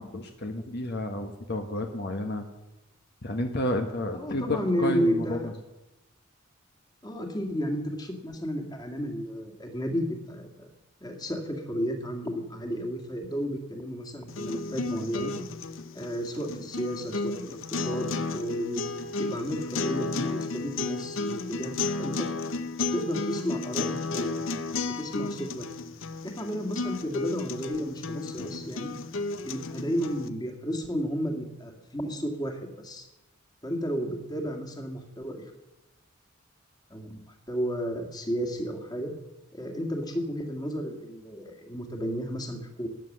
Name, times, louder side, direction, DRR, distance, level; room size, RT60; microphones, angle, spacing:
voice 1, 0.0-2.4 3.2-5.4 28.4-28.5, left 1 dB, 55° left, 4 dB, 1.2 m, -31 dB
voice 2, 4.1-5.5 7.0-10.7 11.0-15.3 15.9-18.8 19.2-22.3 22.8-25.7 26.2-28.9 29.4-33.1 33.6-35.4 36.9-37.2 37.5-39.1 39.5-42.9, equal, 20° left, 3 dB, 2.0 m, -32 dB
sound 1, 14.3-30.3, left 3 dB, 70° left, 0.8 m, -33 dB
13.5 x 9.9 x 7.4 m, 0.99 s
head